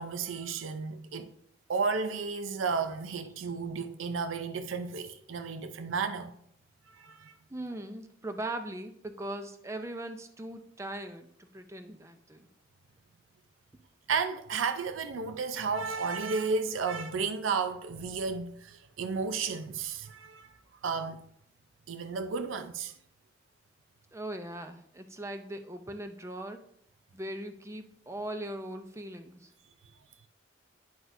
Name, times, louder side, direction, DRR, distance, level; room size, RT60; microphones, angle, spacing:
voice 1, 0.0-1.3 1.7-6.4 6.9-7.4 14.1-20.5 20.8-21.2 21.9-22.9, right 5 dB, 85° right, 0.5 m, -33 dB
voice 2, 7.5-12.5 24.1-26.6 27.1-29.5, right 1 dB, 15° right, 0.5 m, -40 dB
9.4 x 6.0 x 2.6 m
head